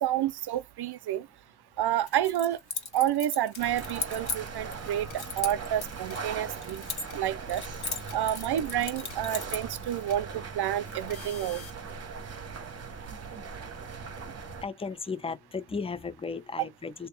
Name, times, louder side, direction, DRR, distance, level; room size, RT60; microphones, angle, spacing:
voice 1, 0.0-1.3 1.8-2.6 2.9-6.8 7.1-7.6 8.1-11.6, right 12 dB, 55° right, 0.5 m, -29 dB
Keys jangling, 2.1-4.8 5.2-7.2 7.5-9.7, left 5 dB, 55° left, 1.7 m, -37 dB
sound 1, 3.6-14.6, right 5 dB, 35° right, 1.0 m, -40 dB
sound 2, 4.8-5.1 5.8-6.1 6.8-7.1 7.8-8.1 8.8-9.1 9.8-10.1 10.8-11.7, left 7 dB, 80° left, 1.1 m, -49 dB
voice 2, 14.5-17.1, left 4 dB, 15° left, 0.5 m, -35 dB
3.3 x 2.8 x 3.2 m
cardioid pair, 110°, 46 cm